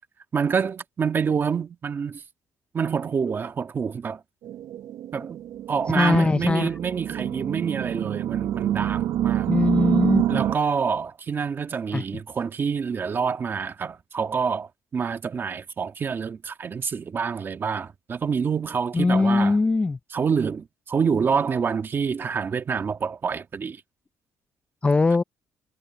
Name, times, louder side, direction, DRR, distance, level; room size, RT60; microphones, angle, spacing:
voice 1, 0.3-2.2 2.7-4.2 5.1-5.4 5.7-9.5 10.3-19.6 20.1-23.8, right 6 dB, 35° right, 1.5 m, -27 dB
sound 1, 4.4-10.6, right 12 dB, 80° right, 0.7 m, -27 dB
voice 2, 5.9-6.7 9.5-10.4 11.9-12.0 18.9-20.0 24.8-25.2, left 3 dB, 20° left, 0.4 m, -21 dB
cardioid pair, 120°, 6 cm